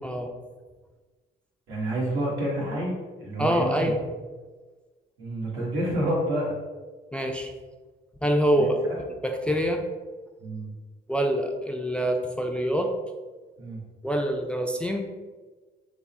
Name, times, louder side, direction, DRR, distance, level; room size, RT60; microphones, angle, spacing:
voice 1, 1.7-2.9 3.2-3.9 5.2-6.5 8.6-8.7 10.4-10.7 13.6-13.8, right 1 dB, 85° right, -4 dB, 1.3 m, -28 dB
voice 2, 3.4-4.0 7.1-7.5 8.2-8.8 9.2-9.8 11.1-12.9 14.0-15.1, equal, 5° left, 3 dB, 0.3 m, -25 dB
3.5 x 2.0 x 4.1 m, 1.3 s
cardioid pair, 90°, 20 cm